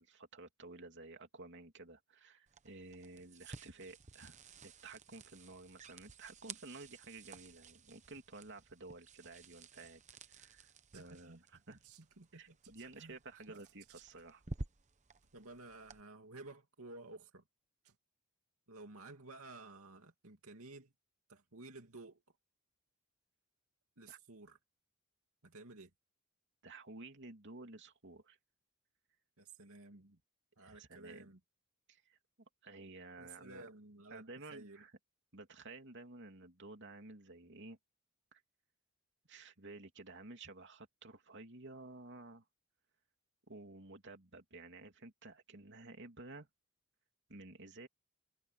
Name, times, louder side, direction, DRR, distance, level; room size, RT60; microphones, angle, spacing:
voice 1, 0.0-10.0 10.3-11.8 12.3-14.4 24.1-24.2 26.6-28.4 30.6-31.3 31.9-32.2 32.6-33.6 34.1-34.9 35.3-37.8 38.3-38.4 39.3-42.4 43.5-46.5 47.3-47.9, right 2 dB, 55° right, 3.0 m, -53 dB
sound 1, 2.5-16.0, right 3 dB, 35° right, 1.0 m, -53 dB
voice 2, 10.9-11.4 11.7-12.6 13.0-13.2 13.5-13.6 15.3-17.4 18.7-20.9 21.3-22.2 24.0-24.6 25.4-25.9 29.4-30.2 30.6-31.4 33.2-34.8, right 2 dB, 70° right, 2.6 m, -54 dB
sound 2, 10.9-11.2 11.5-12.3 12.6-12.9 13.5-14.2 15.2-15.3 17.9-18.0, right 12 dB, 90° right, 2.1 m, -64 dB
head